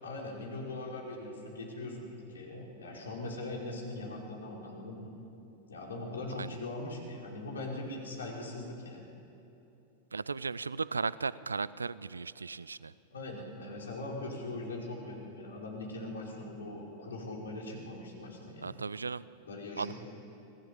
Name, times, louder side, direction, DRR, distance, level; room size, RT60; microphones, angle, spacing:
voice 1, 0.0-5.1 5.7-9.1 13.1-18.8 19.5-19.9, left 2 dB, 70° left, -1 dB, 5.2 m, -41 dB
voice 2, 10.1-12.9 18.6-19.2 19.8-19.9, right 4 dB, 75° right, 19 dB, 0.5 m, -36 dB
24.5 x 18.0 x 8.8 m, 2.9 s
figure-of-eight pair, 90°, 0 cm